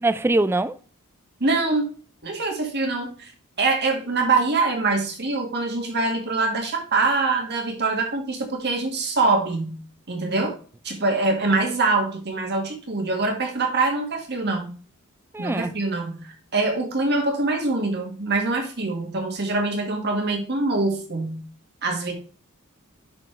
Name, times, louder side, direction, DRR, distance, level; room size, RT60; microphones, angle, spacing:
voice 1, 0.0-0.7 15.3-15.7, right 2 dB, 10° right, 0.3 m, -22 dB
voice 2, 1.4-1.9 2.2-3.3 3.6-9.8 10.1-10.6 10.8-14.7 15.4-21.4 21.8-22.1, right 3 dB, 50° right, 1.8 m, -24 dB
10.5 x 4.4 x 3.2 m
head